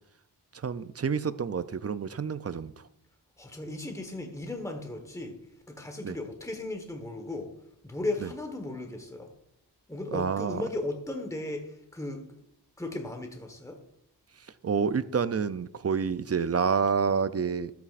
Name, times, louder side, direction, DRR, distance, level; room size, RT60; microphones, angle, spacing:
voice 1, 0.5-2.7 6.0-6.2 8.2-8.3 10.1-10.7 14.6-17.7, right 6 dB, 40° right, 14 dB, 0.4 m, -28 dB
voice 2, 3.4-5.4 5.7-7.5 7.8-9.3 9.9-12.4 12.8-13.8, left 2 dB, 5° left, 4 dB, 1.2 m, -36 dB
12.5 x 8.3 x 2.5 m, 0.76 s
wide cardioid pair, 70°, 41 cm